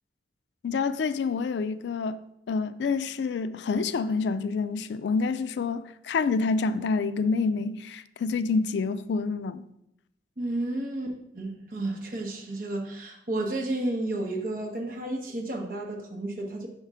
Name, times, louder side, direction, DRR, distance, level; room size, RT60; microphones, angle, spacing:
voice 1, 0.6-2.2 2.5-9.6, left 4 dB, 70° left, 0.3 m, -27 dB
voice 2, 10.4-16.7, right 2 dB, 50° right, 1.1 m, -32 dB
5.5 x 3.6 x 5.5 m
head